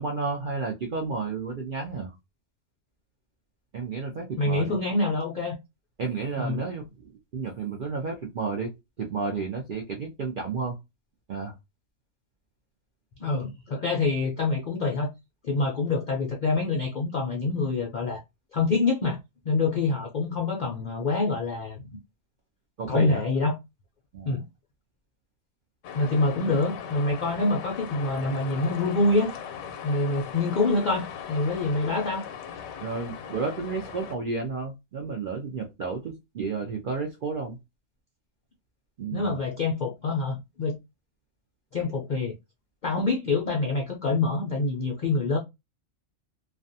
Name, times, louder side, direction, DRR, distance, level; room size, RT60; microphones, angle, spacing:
voice 1, 0.0-2.1 3.7-4.8 6.0-8.7 9.0-10.8 11.3-11.5 22.8-23.2 24.1-24.4 32.8-37.6 39.0-39.4, right 4 dB, 65° right, 0.5 m, -32 dB
voice 2, 4.4-5.6 6.4-6.7 13.2-15.1 15.4-18.2 18.5-19.2 19.5-21.8 22.9-23.6 24.3-24.4 25.9-29.3 29.8-32.3 39.1-40.8 41.7-42.3 42.8-45.4, left 3 dB, 65° left, 0.4 m, -26 dB
sound 1, 25.8-34.2, left 8 dB, 80° left, 1.0 m, -39 dB
2.4 x 2.2 x 2.6 m
omnidirectional pair, 1.4 m